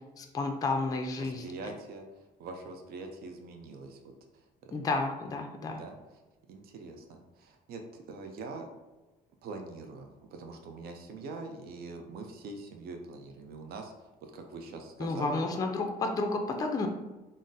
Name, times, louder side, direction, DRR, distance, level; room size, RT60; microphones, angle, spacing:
voice 1, 0.2-1.4 4.7-5.8 15.0-16.9, left 3 dB, 20° left, 3 dB, 0.4 m, -31 dB
voice 2, 1.2-2.1 2.4-4.1 4.6-4.8 5.8-6.0 6.5-8.7 9.4-15.4, right 3 dB, 65° right, 4 dB, 0.5 m, -43 dB
3.7 x 2.0 x 2.6 m, 1.1 s
cardioid pair, 110°, 17 cm